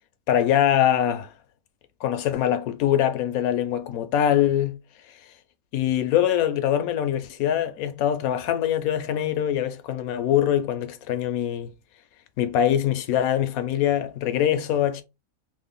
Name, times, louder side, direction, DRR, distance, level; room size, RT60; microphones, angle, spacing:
voice 1, 0.3-1.3 2.0-4.7 5.7-11.7 12.4-15.0, left 10 dB, 90° left, 1.1 m, -23 dB
3.3 x 2.1 x 3.5 m
omnidirectional pair, 1.5 m